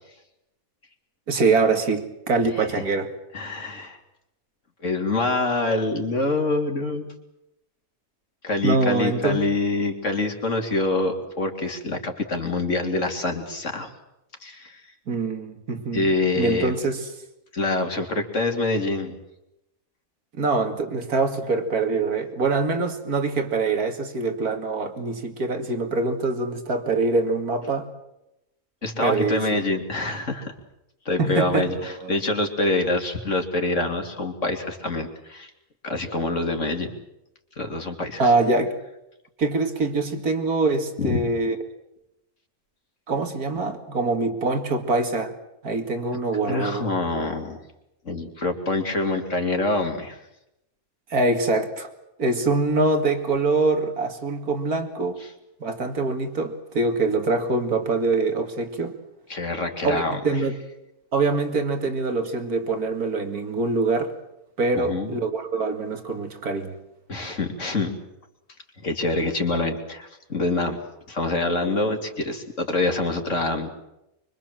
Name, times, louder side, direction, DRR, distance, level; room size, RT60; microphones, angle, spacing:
voice 1, 1.3-3.1 8.6-9.4 15.1-16.1 16.4-17.1 20.4-27.9 29.0-29.6 31.2-32.1 38.2-38.7 39.4-41.6 43.1-45.3 45.6-46.9 51.1-51.9 52.2-55.2 55.6-58.9 59.8-60.6 61.1-64.1 64.6-66.7, right 3 dB, 85° right, 7 dB, 2.8 m, -24 dB
voice 2, 2.5-2.8 3.3-4.0 4.8-7.1 8.4-13.9 14.4-14.8 15.9-16.7 17.5-19.2 28.8-30.5 31.0-35.5 35.8-36.9 37.6-38.3 41.0-41.2 46.5-47.6 48.0-50.2 55.2-55.3 59.3-60.4 64.7-65.1 67.1-68.0 68.8-70.8 71.1-73.7, left 2 dB, 55° left, 4 dB, 3.4 m, -26 dB
25.0 x 24.5 x 7.7 m, 0.86 s
omnidirectional pair, 1.5 m